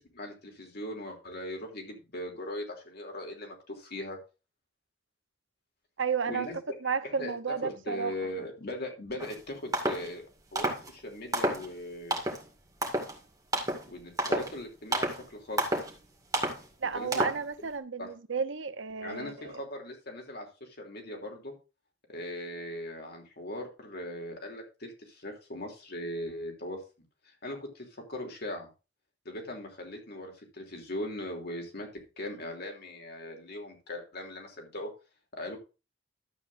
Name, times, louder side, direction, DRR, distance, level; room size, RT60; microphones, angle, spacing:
voice 1, 0.1-4.2 6.3-6.6 7.0-10.2 10.5-12.2 13.9-15.8 16.9-17.2 18.0-18.1 19.0-21.5 22.1-26.8 27.2-28.7 29.2-31.9 32.2-34.9 35.3-35.6, left 1 dB, 60° left, 3.2 m, -39 dB
voice 2, 6.0-6.5 6.8-8.1 16.8-19.6, right 5 dB, 75° right, 0.9 m, -32 dB
sound 1, 9.2-9.4 9.7-10.1 10.6-10.9 11.3-11.7 12.1-12.4 12.8-13.1 13.5-13.9 14.2-14.6 14.9-15.2 15.6-15.9 16.3-16.6 17.1-17.4, right 1 dB, 20° right, 2.2 m, -30 dB
12.5 x 8.5 x 2.7 m
head